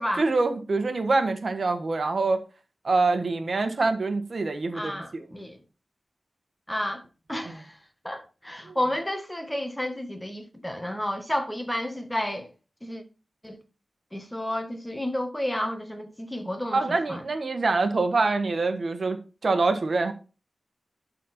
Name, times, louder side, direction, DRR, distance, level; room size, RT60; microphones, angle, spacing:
voice 1, 0.2-2.4 2.8-5.2 8.6-8.7 16.7-19.2 19.4-20.1, right 3 dB, 60° right, 1.3 m, -25 dB
voice 2, 4.7-5.6 6.7-7.0 7.3-7.8 8.0-12.5 12.8-13.0 13.4-13.6 14.1-17.2, left 1 dB, 10° left, 1.5 m, -31 dB
11.0 x 4.2 x 4.4 m
wide cardioid pair, 65°, 0 cm